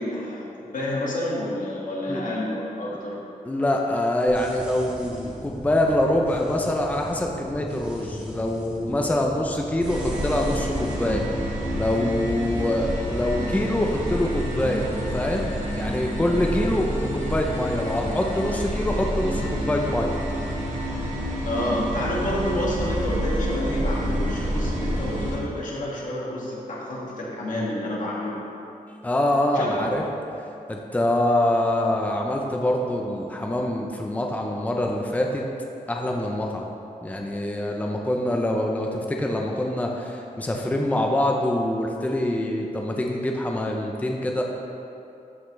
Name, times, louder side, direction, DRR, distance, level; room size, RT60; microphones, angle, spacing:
voice 1, 0.0-3.2 21.5-28.4 29.5-30.0, left 1 dB, 65° left, -5 dB, 2.0 m, -29 dB
voice 2, 3.5-14.9 15.1-20.1 29.0-30.0 30.7-35.4 35.9-36.7 37.0-44.4, left 1 dB, 10° left, 0 dB, 0.6 m, -25 dB
sound 1, 4.3-11.9, equal, 10° right, 1.4 m, -40 dB
sound 2, 9.8-25.4, equal, 60° right, 2.1 m, -28 dB
13.5 x 5.7 x 3.2 m, 2.7 s
wide cardioid pair, 160°, 14 cm